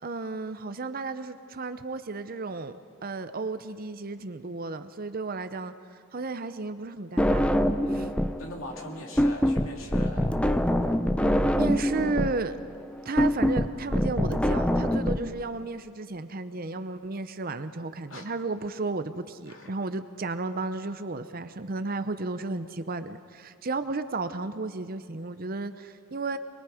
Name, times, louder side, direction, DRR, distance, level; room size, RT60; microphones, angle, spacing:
voice 1, 0.0-2.7 3.0-5.7 6.1-7.4 7.9-8.1 11.6-12.6 13.0-26.4, right 3 dB, 45° right, 11 dB, 0.7 m, -33 dB
sound 1, 7.2-8.4 8.7-15.2, equal, 5° left, 0.6 m, -24 dB
voice 2, 8.4-10.4 18.1-18.2 19.5-19.7, left 1 dB, 70° left, 1 dB, 2.7 m, -41 dB
24.0 x 22.0 x 5.0 m, 2.2 s
head